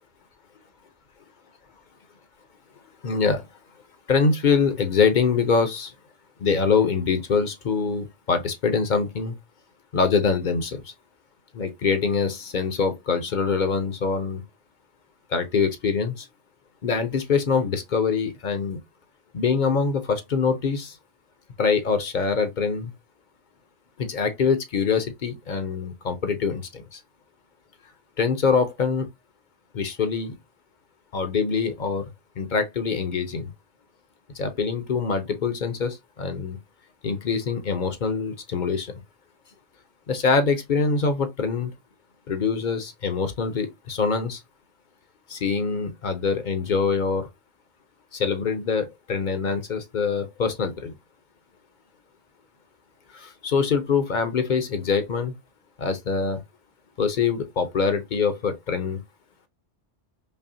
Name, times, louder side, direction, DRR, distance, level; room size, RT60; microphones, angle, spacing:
voice 1, 3.0-3.5 4.1-5.9 6.4-9.3 9.9-10.9 11.5-14.4 15.3-16.3 16.8-18.8 19.3-21.0 21.6-22.9 24.0-27.0 28.2-29.1 29.7-30.4 31.1-32.0 32.4-33.5 34.3-36.6 37.0-38.9 40.1-41.7 42.3-44.4 45.3-47.3 48.1-50.9 53.1-55.3 55.8-56.4 57.0-59.0, left 5 dB, 50° left, 0.7 m, -24 dB
5.4 x 2.1 x 2.6 m
omnidirectional pair, 1.1 m